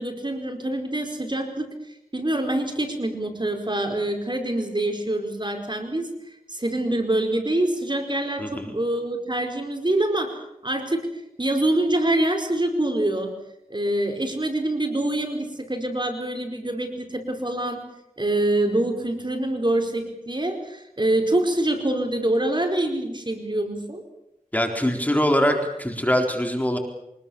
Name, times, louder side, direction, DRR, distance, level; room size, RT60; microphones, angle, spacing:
voice 1, 0.0-1.7 2.1-6.1 6.5-10.4 10.6-11.1 11.4-13.3 13.7-17.8 18.2-24.0, right 1 dB, 30° right, 4 dB, 4.9 m, -25 dB
voice 2, 8.4-8.7 24.5-26.8, equal, 10° left, 3 dB, 4.3 m, -23 dB
25.0 x 21.0 x 7.2 m, 0.83 s
wide cardioid pair, 45°, 15 cm